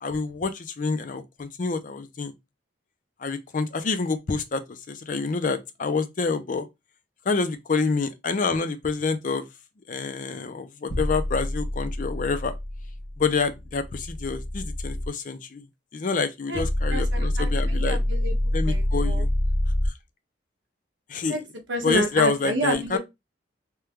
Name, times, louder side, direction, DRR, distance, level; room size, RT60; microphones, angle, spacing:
voice 1, 0.0-2.3 3.2-4.6 4.9-6.7 7.3-9.5 9.9-12.5 13.2-15.6 15.9-18.0 18.5-19.3 21.1-21.4 21.8-23.0, left 4 dB, 45° left, 0.4 m, -27 dB
sound 1, 10.9-15.1 16.5-19.9, left 1 dB, 65° left, 1.1 m, -26 dB
voice 2, 16.9-18.4 18.6-19.3 21.3-21.4 21.7-23.0, right 1 dB, 80° right, 0.6 m, -29 dB
2.9 x 2.2 x 3.4 m
head